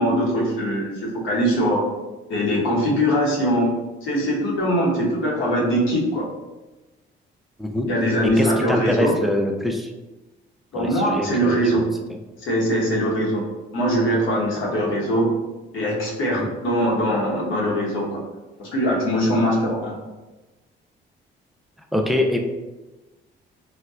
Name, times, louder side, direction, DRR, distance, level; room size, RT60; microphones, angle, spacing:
voice 1, 0.0-1.9 2.3-6.2 7.9-9.1 10.7-11.8 12.4-13.5 13.7-15.3 15.7-18.2 18.6-19.9, equal, 80° left, -4 dB, 1.0 m, -22 dB
voice 2, 8.2-9.9 10.7-11.8 12.1-12.2 16.3-16.5 21.9-22.4, left 1 dB, ahead, 2 dB, 0.4 m, -24 dB
4.2 x 2.2 x 2.3 m, 1.1 s
cardioid pair, 90°, 20 cm